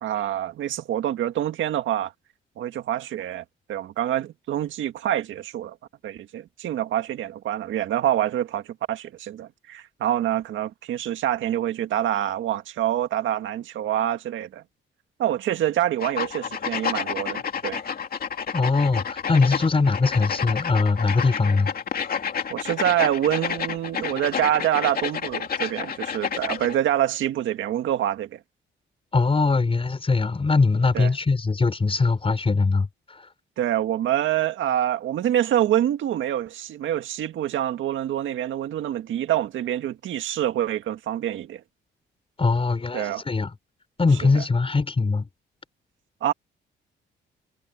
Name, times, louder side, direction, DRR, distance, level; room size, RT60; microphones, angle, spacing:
voice 1, 0.0-2.1 2.6-5.8 6.0-14.6 15.2-17.8 22.5-28.4 30.9-31.1 33.6-41.6 42.9-43.2 44.3-44.5 46.2-46.3, right 11 dB, 75° right, 1.9 m, -26 dB
sound 1, 16.0-26.8, left 7 dB, 50° left, 2.6 m, -30 dB
voice 2, 18.5-21.7 29.1-33.3 42.4-43.5 44.0-45.3, left 4 dB, 30° left, 5.4 m, -21 dB
cardioid pair, 90°, 20 cm